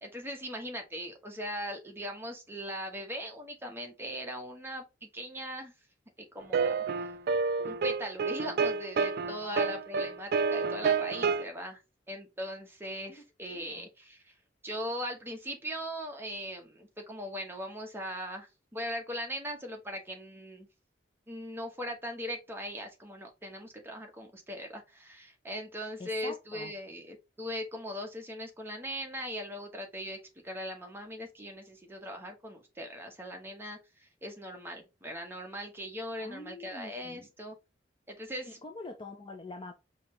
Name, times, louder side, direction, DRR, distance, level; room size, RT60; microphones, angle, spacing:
voice 1, 0.0-5.7 6.2-7.2 7.6-11.8 12.1-14.3 14.6-20.7 21.3-30.2 30.4-37.6 38.1-38.6, equal, 15° right, 1.0 m, -40 dB
sound 1, 6.5-11.4, right 5 dB, 60° right, 0.4 m, -29 dB
voice 2, 13.1-13.9 26.0-26.7 36.2-37.3 38.4-39.7, left 2 dB, 30° left, 0.6 m, -45 dB
5.2 x 2.9 x 3.1 m
head